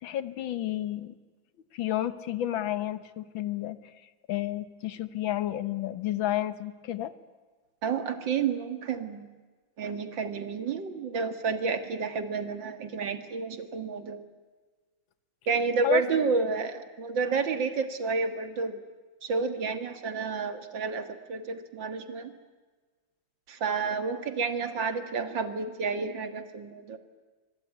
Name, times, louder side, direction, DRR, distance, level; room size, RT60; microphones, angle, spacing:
voice 1, 0.0-1.2 1.7-3.8 4.3-7.1 15.8-16.0, left 13 dB, 85° left, 14 dB, 1.9 m, -31 dB
voice 2, 7.8-9.3 9.8-14.2 15.5-18.8 19.2-22.3 23.5-27.0, right 5 dB, 70° right, 9 dB, 2.5 m, -30 dB
25.0 x 22.0 x 9.4 m, 1.4 s
omnidirectional pair, 2.1 m